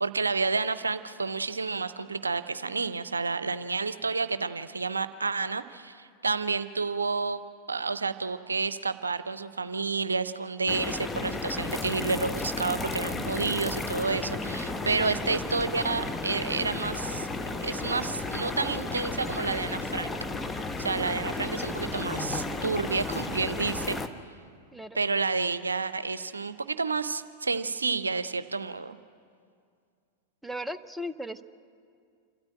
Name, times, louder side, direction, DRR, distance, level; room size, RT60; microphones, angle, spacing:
voice 1, 0.0-7.4 7.7-17.3 17.6-20.1 20.8-24.0 25.0-29.0, right 4 dB, 75° right, 13 dB, 0.7 m, -30 dB
sound 1, 10.7-24.1, left 3 dB, 15° left, 1.1 m, -33 dB
voice 2, 30.4-31.4, equal, ahead, 11 dB, 0.8 m, -36 dB
28.0 x 13.0 x 9.0 m, 2.3 s
figure-of-eight pair, 90°, 0 cm